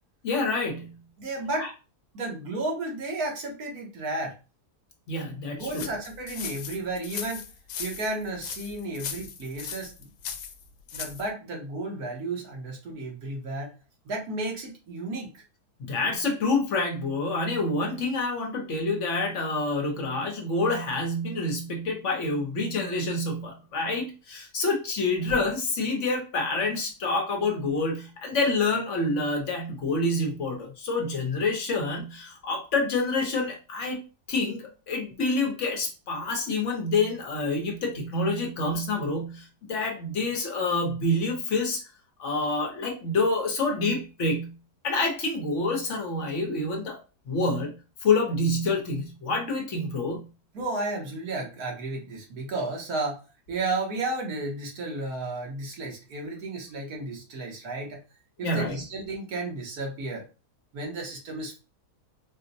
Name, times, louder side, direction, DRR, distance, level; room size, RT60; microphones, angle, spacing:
voice 1, 0.2-1.0 1.6-1.7 5.1-5.9 15.8-41.8 42.2-44.6 44.8-47.0 47.3-50.3 58.4-58.8, left 3 dB, 55° left, 1 dB, 1.0 m, -27 dB
voice 2, 1.2-1.7 2.1-4.3 5.5-7.4 7.8-10.1 10.9-13.7 14.1-15.4 25.1-25.2 50.5-53.2 53.5-58.0 58.4-60.2 60.7-61.6, right 2 dB, 70° right, 0 dB, 1.5 m, -33 dB
sound 1, 5.7-11.3, left 7 dB, 80° left, 1.1 m, -38 dB
4.3 x 2.1 x 2.6 m, 0.31 s
omnidirectional pair, 1.7 m